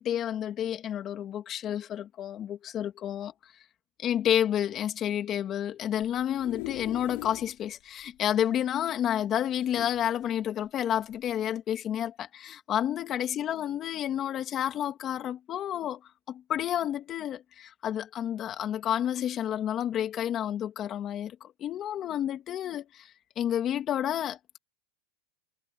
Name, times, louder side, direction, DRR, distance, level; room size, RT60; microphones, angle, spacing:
voice 1, 0.0-3.3 4.0-16.0 16.3-24.6, left 10 dB, 30° left, 2.8 m, -30 dB
sound 1, 6.0-7.5 8.0-8.1 8.3-8.4 9.5-10.4 11.1-11.3, left 27 dB, 55° left, 6.5 m, -42 dB
supercardioid pair, 145°, 0 cm